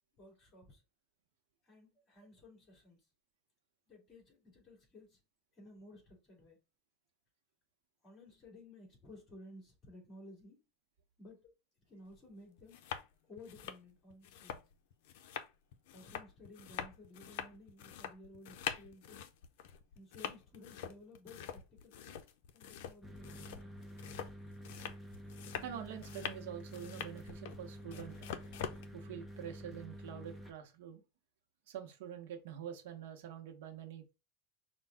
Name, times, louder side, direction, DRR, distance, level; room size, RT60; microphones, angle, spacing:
voice 1, 0.2-0.8 1.6-3.1 3.9-5.2 5.5-6.6 8.0-10.6 11.2-11.5 11.9-12.8 13.2-14.6 15.9-19.3 19.9-22.2 22.5-23.7, left 2 dB, 30° left, 2.6 m, -56 dB
sound 1, 12.1-12.2 12.6-13.1 13.4-28.8, left 9 dB, 75° left, 0.5 m, -45 dB
sound 2, 23.0-30.5, equal, ahead, 0.8 m, -49 dB
voice 2, 25.6-28.2 28.9-31.0 31.7-34.1, right 9 dB, 85° right, 0.9 m, -46 dB
5.2 x 2.3 x 3.4 m
supercardioid pair, 145°, 0 cm